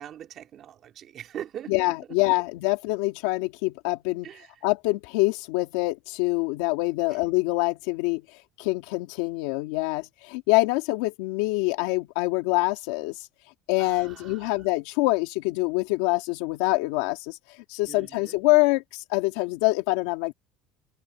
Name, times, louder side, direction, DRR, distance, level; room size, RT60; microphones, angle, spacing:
voice 1, 0.0-2.0 4.2-4.6 7.1-7.2 13.8-14.5 17.9-18.4, right 10 dB, 35° right, 3.8 m, -42 dB
voice 2, 1.7-4.3 4.6-8.2 8.6-13.3 13.7-17.4 17.7-20.3, left 22 dB, 85° left, 2.5 m, -25 dB
cardioid pair, 170°, 0 cm